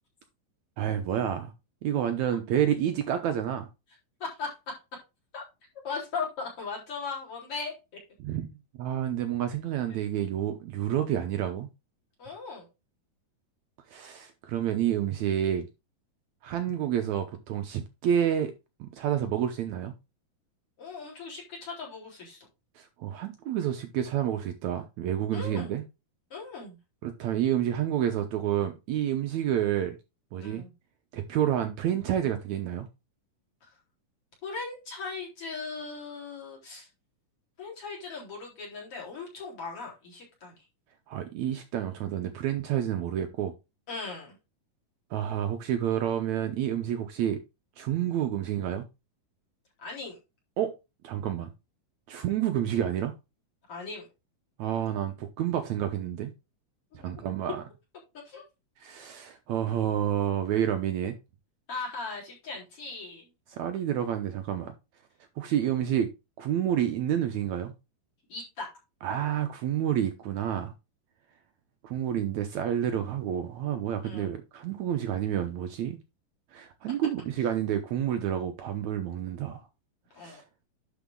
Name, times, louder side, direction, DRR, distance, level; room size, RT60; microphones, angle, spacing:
voice 1, 0.8-1.5 1.8-3.7 8.2-8.5 8.8-11.7 13.9-15.7 16.4-18.5 18.8-19.9 22.8-25.8 27.0-30.0 30.3-30.6 31.1-32.9 41.1-43.5 45.1-47.4 47.8-48.9 50.6-50.7 51.0-51.5 52.1-53.1 54.6-56.3 56.9-57.6 58.8-61.1 63.5-64.7 65.4-66.1 66.4-67.7 69.0-70.7 71.8-76.0 76.5-79.6 80.2-80.4, right 10 dB, 70° right, 1.8 m, -29 dB
voice 2, 4.2-4.5 5.3-5.4 5.8-7.7 12.2-12.7 20.8-22.5 25.3-25.8 26.3-26.8 30.4-30.7 34.4-36.9 37.6-40.6 43.9-44.4 49.8-50.2 53.7-54.1 57.0-57.1 58.3-58.4 61.7-63.3 68.3-68.7 74.0-74.3 80.1-80.4, left 4 dB, 40° left, 4.6 m, -38 dB
11.0 x 4.8 x 3.7 m
omnidirectional pair, 4.0 m